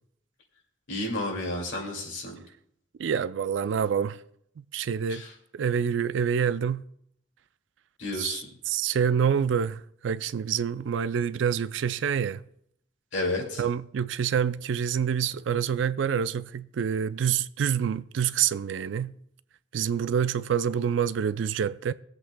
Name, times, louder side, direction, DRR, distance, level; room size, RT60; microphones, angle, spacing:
voice 1, 0.9-2.4 5.1-5.3 8.0-8.4 13.1-13.6, left 2 dB, 75° left, 2.3 m, -31 dB
voice 2, 3.0-4.2 4.6-5.2 5.5-6.8 8.2-8.4 8.7-12.4 13.6-19.1 19.7-21.9, right 7 dB, 70° right, 0.3 m, -27 dB
23.5 x 8.0 x 2.2 m
head